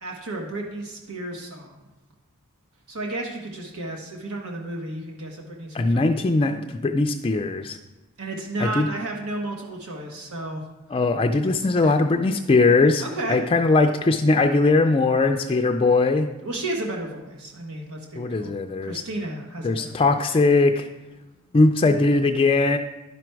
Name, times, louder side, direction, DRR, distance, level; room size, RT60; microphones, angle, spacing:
voice 1, 0.0-1.8 2.9-6.1 8.2-10.7 11.7-12.0 13.0-13.4 16.4-18.5 18.8-20.1, right 2 dB, 85° right, 1 dB, 1.3 m, -33 dB
voice 2, 5.7-7.8 8.6-8.9 10.9-16.3 18.2-19.0 19.6-20.9 21.5-22.8, left 3 dB, 25° left, 6 dB, 0.4 m, -20 dB
11.0 x 6.1 x 4.6 m, 1.0 s
head